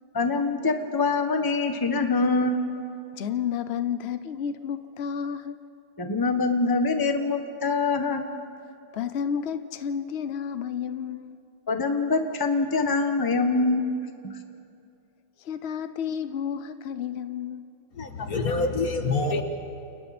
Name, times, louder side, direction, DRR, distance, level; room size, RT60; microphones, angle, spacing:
voice 1, 0.1-2.6 6.0-8.2 11.7-13.8, left 3 dB, 15° left, 6 dB, 1.0 m, -24 dB
voice 2, 3.1-5.6 8.9-11.3 15.4-17.7, left 8 dB, 75° left, 11 dB, 0.6 m, -31 dB
voice 3, 17.9-19.4, left 3 dB, 55° left, 5 dB, 1.9 m, -26 dB
29.5 x 29.0 x 4.3 m, 2.5 s
omnidirectional pair, 2.0 m